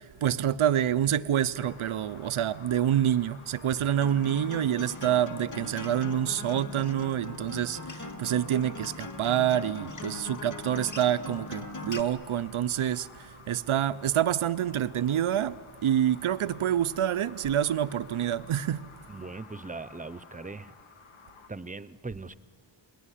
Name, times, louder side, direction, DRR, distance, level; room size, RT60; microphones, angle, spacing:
voice 1, 0.0-18.9, right 10 dB, 90° right, 0.7 m, -27 dB
sound 1, 1.5-21.5, left 5 dB, 80° left, 1.9 m, -52 dB
Acoustic guitar, 4.0-12.0, left 2 dB, 40° left, 1.7 m, -40 dB
voice 2, 19.1-20.8 21.5-22.4, right 3 dB, 15° right, 0.7 m, -40 dB
30.0 x 19.5 x 10.0 m
wide cardioid pair, 105°, 48 cm